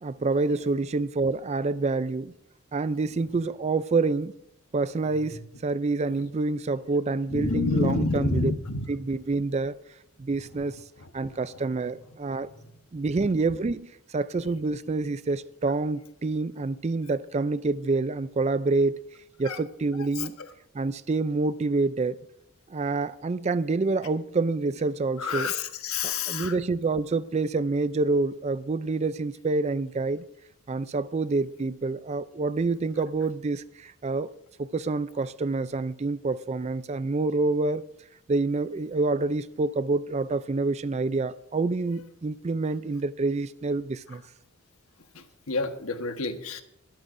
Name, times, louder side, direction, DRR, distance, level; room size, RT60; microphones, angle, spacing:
voice 1, 0.0-2.3 2.7-4.3 4.7-8.5 8.9-9.8 10.2-10.8 11.1-12.5 12.9-19.0 19.4-20.3 20.7-22.2 22.7-25.5 26.0-30.2 30.7-34.3 34.6-37.9 38.3-44.2, right 3 dB, 30° right, 0.3 m, -27 dB
voice 2, 7.3-8.8 19.5-19.6 20.2-20.3 25.2-26.5 45.1-46.6, left 3 dB, 75° left, 1.3 m, -28 dB
20.5 x 13.0 x 2.6 m
head